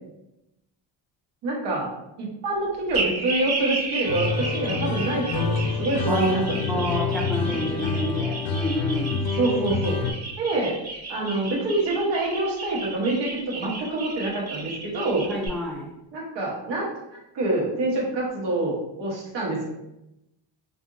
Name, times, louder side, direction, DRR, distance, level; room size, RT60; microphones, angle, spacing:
voice 1, 1.4-1.9 2.2-6.8 9.4-10.0 10.4-10.8 11.1-15.3 16.1-16.9 17.3-19.7, right 2 dB, 70° right, -3 dB, 1.1 m, -26 dB
sound 1, 2.9-15.5, right 3 dB, 55° right, 1.3 m, -33 dB
sound 2, 4.0-10.1, left 4 dB, 60° left, 0.5 m, -27 dB
voice 2, 6.7-9.2 15.3-15.9, equal, ahead, -3 dB, 0.3 m, -28 dB
2.7 x 2.6 x 2.5 m, 0.89 s
cardioid pair, 125°, 44 cm